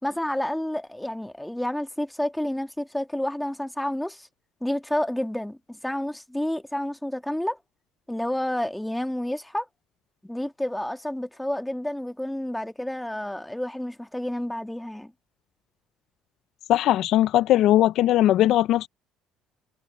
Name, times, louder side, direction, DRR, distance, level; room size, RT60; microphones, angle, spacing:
voice 1, 0.0-4.3 4.6-7.6 8.1-9.7 10.2-15.1, left 1 dB, 5° left, 1.8 m, -30 dB
voice 2, 16.7-18.9, left 13 dB, 65° left, 0.4 m, -19 dB
cardioid pair, 120°, 0 cm